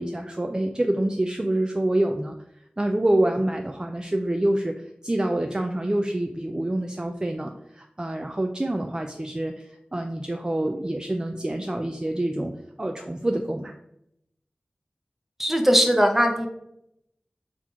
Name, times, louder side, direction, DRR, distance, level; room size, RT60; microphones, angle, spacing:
voice 1, 0.0-2.4 2.8-12.5 12.8-13.7, right 1 dB, 25° right, 5 dB, 0.4 m, -26 dB
voice 2, 15.4-16.5, equal, 10° right, 3 dB, 0.8 m, -19 dB
4.1 x 2.9 x 4.4 m, 0.79 s
wide cardioid pair, 40°, 3 cm